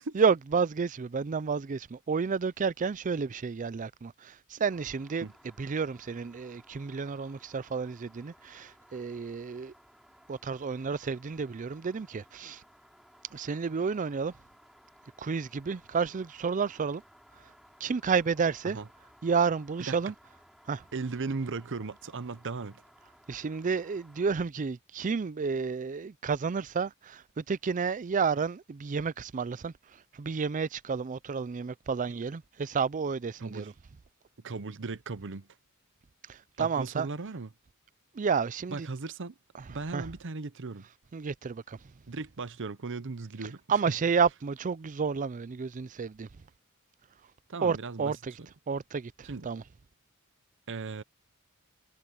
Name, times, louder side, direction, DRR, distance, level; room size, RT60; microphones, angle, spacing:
voice 1, 0.1-5.3 5.6-9.7 10.3-12.6 13.3-14.3 15.2-17.0 17.8-18.8 19.2-20.1 20.7-20.8 23.3-29.7 30.1-33.7 36.3-37.1 38.1-38.9 39.9-40.0 41.1-41.8 43.7-46.3 47.6-48.2 48.7-49.6, right 5 dB, 35° right, 0.4 m, -30 dB
sound 1, 4.7-24.3, equal, ahead, 5.1 m, -59 dB
voice 2, 19.8-20.1 20.9-22.8 33.4-33.7 34.4-35.5 36.6-37.5 38.7-39.4 39.7-40.9 42.1-43.6 47.5-48.1 49.2-49.5 50.7-51.0, right 4 dB, 55° right, 0.8 m, -37 dB
head